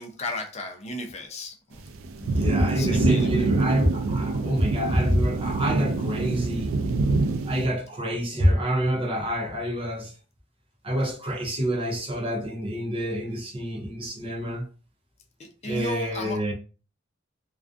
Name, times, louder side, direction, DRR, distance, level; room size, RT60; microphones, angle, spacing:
voice 1, 0.0-1.8 2.7-3.4 4.4-4.6 15.4-16.4, left 2 dB, 35° left, 0.5 m, -35 dB
sound 1, 1.8-7.7, right 3 dB, 85° right, 0.3 m, -25 dB
voice 2, 2.1-6.8 7.4-10.1 10.8-14.7 15.6-16.5, equal, 30° right, 0.5 m, -26 dB
2.4 x 2.3 x 2.4 m
head